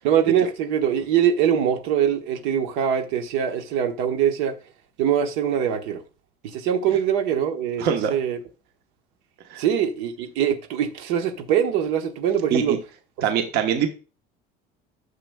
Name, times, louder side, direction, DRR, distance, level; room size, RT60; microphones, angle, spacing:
voice 1, 0.0-4.5 5.0-6.0 6.5-8.4 9.6-12.8, right 9 dB, 80° right, 1.2 m, -23 dB
voice 2, 7.8-8.1 9.5-9.6 12.5-12.8 13.2-13.9, right 8 dB, 55° right, 1.1 m, -23 dB
9.8 x 6.8 x 2.3 m
cardioid pair, 150°, 19 cm